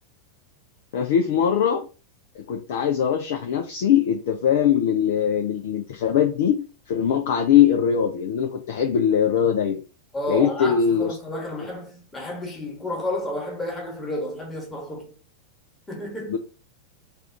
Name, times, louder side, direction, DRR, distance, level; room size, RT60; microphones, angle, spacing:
voice 1, 0.9-1.9 2.5-9.8 10.3-11.1 16.3-16.4, left 8 dB, 55° left, 0.5 m, -21 dB
voice 2, 10.1-15.2 15.9-16.4, left 1 dB, 10° left, 1.3 m, -31 dB
3.5 x 2.5 x 4.5 m
figure-of-eight pair, 90°, 0 cm